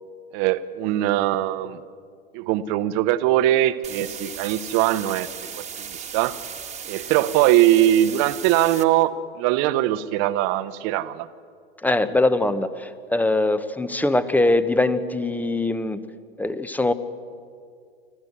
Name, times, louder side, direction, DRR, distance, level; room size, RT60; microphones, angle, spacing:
voice 1, 0.3-1.8 2.3-5.3 5.5-6.4 6.9-11.3, right 13 dB, 50° right, 13 dB, 1.1 m, -21 dB
sound 1, 3.8-8.8, right 7 dB, 20° right, 1.6 m, -36 dB
voice 2, 11.8-16.0 16.4-16.9, left 2 dB, 5° left, 13 dB, 1.0 m, -22 dB
25.5 x 15.0 x 8.1 m, 2.2 s
figure-of-eight pair, 85°, 31 cm